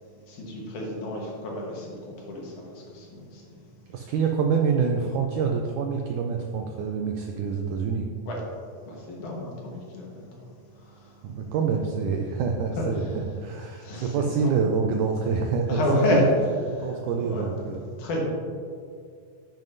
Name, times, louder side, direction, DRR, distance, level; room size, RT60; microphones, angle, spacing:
voice 1, 0.3-3.6 4.0-4.1 8.3-8.4 8.9-10.3 10.8-11.2 13.8-14.5 15.7-16.2 16.8-18.2, left 2 dB, 65° left, -2 dB, 2.5 m, -31 dB
voice 2, 3.9-8.1 11.2-15.8 16.1-16.3 16.8-17.8, right 5 dB, 90° right, 2 dB, 1.8 m, -26 dB
10.5 x 7.5 x 2.6 m, 2.3 s
omnidirectional pair, 4.2 m